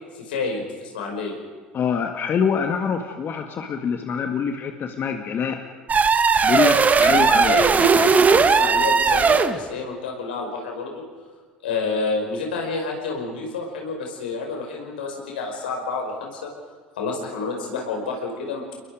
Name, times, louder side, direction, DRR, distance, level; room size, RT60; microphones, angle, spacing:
voice 1, 0.1-1.4 7.0-7.1 7.5-11.0 11.6-16.5 17.0-18.6, left 3 dB, 80° left, 1 dB, 5.4 m, -29 dB
voice 2, 1.7-5.6 6.4-7.6, left 7 dB, 45° left, 5 dB, 1.9 m, -25 dB
sound 1, 5.9-9.6, right 5 dB, 30° right, 1.6 m, -17 dB
30.0 x 21.5 x 5.1 m, 1.5 s
hypercardioid pair, 65°, 5 cm